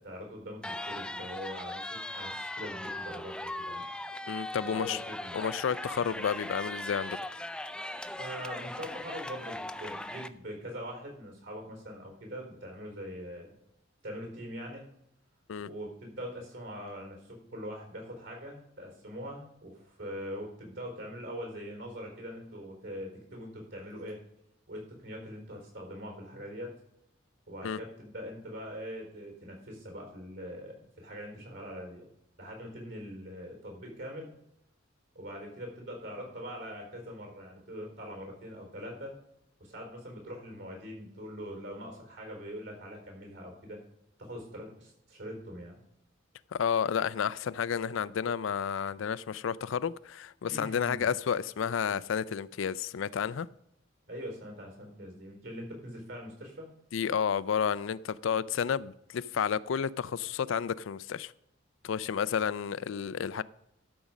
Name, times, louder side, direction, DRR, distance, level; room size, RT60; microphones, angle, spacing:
voice 1, 0.0-3.8 4.6-5.4 8.2-13.5 14.0-14.8 15.6-24.2 24.7-26.8 27.5-32.1 32.4-34.3 35.1-39.1 39.6-43.8 44.2-45.8 50.5-51.1 54.1-56.7, equal, 65° right, 1 dB, 4.2 m, -42 dB
sound 1, 0.6-10.3, left 1 dB, 5° left, 0.4 m, -39 dB
voice 2, 4.3-5.0 5.3-7.2 15.5-15.7 27.6-27.8 46.5-53.5 56.9-61.3 61.8-63.4, left 7 dB, 80° left, 18 dB, 0.4 m, -31 dB
12.5 x 5.2 x 6.1 m, 0.79 s
head